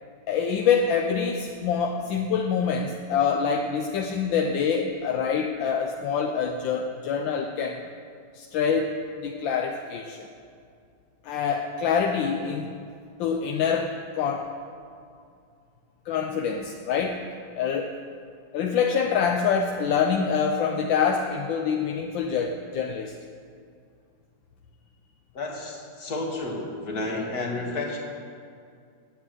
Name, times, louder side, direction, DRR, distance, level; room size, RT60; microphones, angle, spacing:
voice 1, 0.3-7.8 8.3-10.3 11.2-12.7 13.2-14.5 16.1-17.3 17.6-18.0 18.5-23.1, left 6 dB, 80° left, 3 dB, 1.4 m, -25 dB
voice 2, 25.3-28.0, left 2 dB, 55° left, -1 dB, 2.3 m, -31 dB
9.9 x 8.4 x 9.0 m, 2.3 s
omnidirectional pair, 2.1 m